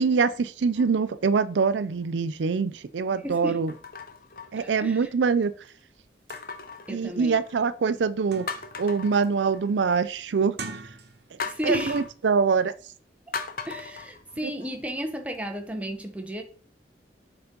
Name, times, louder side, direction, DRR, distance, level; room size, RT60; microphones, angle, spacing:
voice 1, 0.0-3.7 4.5-5.5 6.9-8.5 8.8-10.6 11.6-12.7, right 5 dB, 85° right, 0.4 m, -24 dB
sound 1, 0.7-1.2 1.9-2.0 3.7-5.1 6.3-7.7 8.1-8.2 8.5-9.9 11.4-12.1 13.3-14.9 15.3-15.4, left 5 dB, 50° left, 0.8 m, -38 dB
voice 2, 3.1-3.6 4.6-5.1 6.9-7.4 11.5-12.0 13.3-13.4 13.7-16.4, equal, 10° right, 0.9 m, -33 dB
sound 2, 6.0-6.1 6.3-6.5 7.0-7.1 7.5-8.8 9.2-9.6 10.4-11.4 11.8-12.0, right 4 dB, 65° right, 1.0 m, -42 dB
6.8 x 4.0 x 5.2 m
head